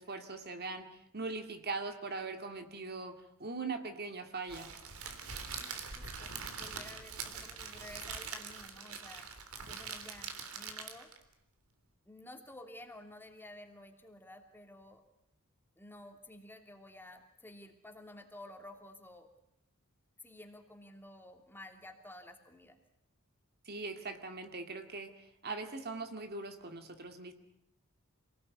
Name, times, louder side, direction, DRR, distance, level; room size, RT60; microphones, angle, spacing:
voice 1, 0.0-3.1 3.4-4.7 23.7-25.1 25.4-27.3, right 3 dB, 45° right, 6 dB, 2.2 m, -41 dB
Crackle, 4.5-11.2, right 5 dB, 75° right, 3.5 m, -43 dB
voice 2, 5.6-9.3 9.6-11.1 12.0-15.0 15.8-19.3 20.2-22.8, left 1 dB, 10° left, 4 dB, 3.0 m, -52 dB
27.5 x 19.5 x 9.6 m, 0.79 s
head